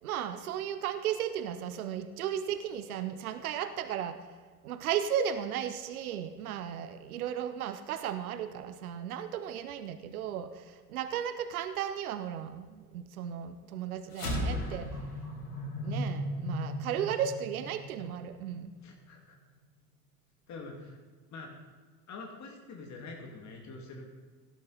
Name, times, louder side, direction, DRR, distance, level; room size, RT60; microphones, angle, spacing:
voice 1, 0.0-4.3 4.6-14.9 15.8-18.7, right 9 dB, 65° right, 11 dB, 0.8 m, -35 dB
sound 1, 14.1-18.7, equal, 80° left, 3.0 m, -36 dB
voice 2, 18.8-19.4 20.5-21.0 21.3-21.7 22.1-24.1, left 3 dB, 35° left, 1 dB, 2.2 m, -45 dB
17.0 x 7.6 x 4.0 m, 1.5 s
figure-of-eight pair, 70°, 46 cm